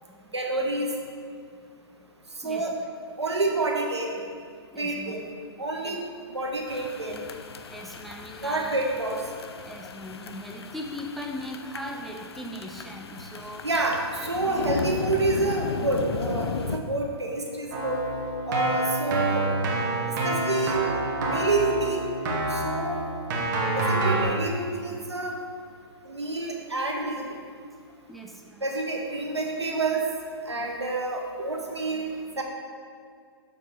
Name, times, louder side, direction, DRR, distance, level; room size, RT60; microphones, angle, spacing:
voice 1, 0.3-0.9 2.4-2.8 3.2-4.1 4.8-5.2 5.6-6.0 6.3-7.1 8.4-9.2 13.6-18.0 18.4-19.5 20.2-20.8 21.3-22.1 22.5-23.0 23.8-25.4 26.1-27.3 28.6-30.0 30.5-32.1 32.4-32.5, right 2 dB, 90° right, 0 dB, 1.1 m, -28 dB
voice 2, 4.7-5.2 5.8-6.0 7.7-8.8 9.6-13.7 14.4-14.6 19.1-19.2 28.1-28.7, equal, ahead, 0 dB, 0.4 m, -39 dB
sound 1, 6.7-16.8, left 5 dB, 70° left, 0.5 m, -35 dB
Keyboard (musical), 17.7-24.3, right 2 dB, 45° right, 1.3 m, -27 dB
6.9 x 3.5 x 5.6 m, 2.2 s
figure-of-eight pair, 120°, 14 cm